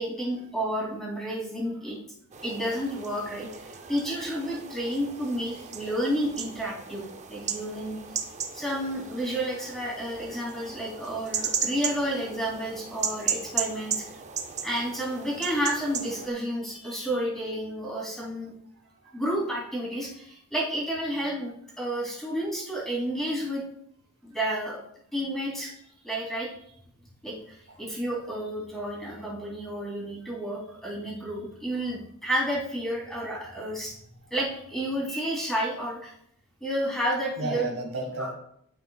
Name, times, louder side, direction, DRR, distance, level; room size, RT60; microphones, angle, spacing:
voice 1, 0.0-2.0 2.4-7.0 7.3-8.0 8.5-14.0 14.6-18.5 19.1-23.6 24.2-24.8 25.1-26.5 27.2-34.0 34.3-36.1 36.6-37.7 38.2-38.3, right 1 dB, ahead, -4 dB, 2.7 m, -31 dB
sound 1, 2.3-16.3, right 7 dB, 35° right, 0.6 m, -36 dB
voice 2, 5.5-5.9 13.1-13.2 27.7-27.8 37.4-38.3, right 1 dB, 85° right, 4 dB, 1.6 m, -34 dB
11.5 x 5.8 x 2.3 m, 0.71 s
head